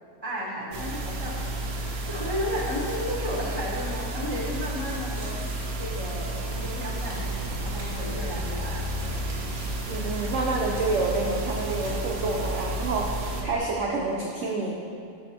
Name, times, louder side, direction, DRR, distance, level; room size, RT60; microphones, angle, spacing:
voice 1, 0.2-9.2, left 1 dB, 45° left, -5 dB, 0.3 m, -34 dB
sound 1, 0.7-13.4, right 2 dB, 60° right, 1.2 m, -32 dB
Tearing, 1.0-13.3, right 1 dB, 45° right, 1.7 m, -47 dB
sound 2, 6.9-13.6, left 3 dB, 80° left, 1.8 m, -40 dB
voice 2, 9.9-14.7, right 3 dB, 80° right, -1 dB, 0.6 m, -28 dB
6.2 x 5.2 x 4.2 m, 2.6 s
omnidirectional pair, 1.9 m